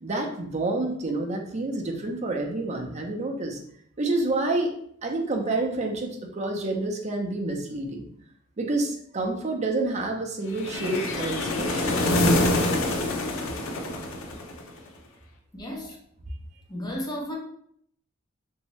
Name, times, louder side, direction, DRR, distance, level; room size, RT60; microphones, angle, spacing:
voice 1, 0.0-3.6 4.0-4.7 5.0-8.1 8.6-12.0, right 2 dB, 35° right, 2 dB, 0.5 m, -28 dB
sound 1, 10.6-14.8, left 1 dB, 90° left, 0.5 m, -25 dB
voice 2, 15.5-16.0 16.7-17.3, equal, 20° left, -2 dB, 0.7 m, -33 dB
3.1 x 2.7 x 3.1 m, 0.66 s
head